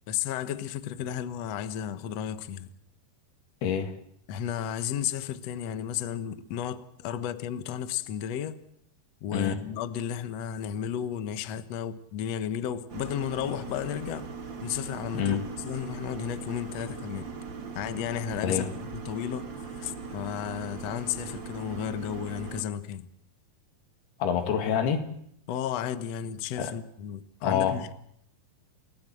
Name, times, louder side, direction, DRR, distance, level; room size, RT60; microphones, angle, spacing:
voice 1, 0.1-2.7 4.3-8.6 9.2-14.3 14.6-17.3 17.7-23.1 25.5-27.9, left 9 dB, 65° left, 1.7 m, -33 dB
voice 2, 3.6-4.0 9.3-9.6 15.1-15.5 18.4-18.7 24.2-25.2 26.6-26.7 27.4-27.9, left 8 dB, 90° left, 4.1 m, -27 dB
sound 1, 12.9-22.6, right 5 dB, 40° right, 1.9 m, -40 dB
29.0 x 17.0 x 7.8 m
omnidirectional pair, 4.4 m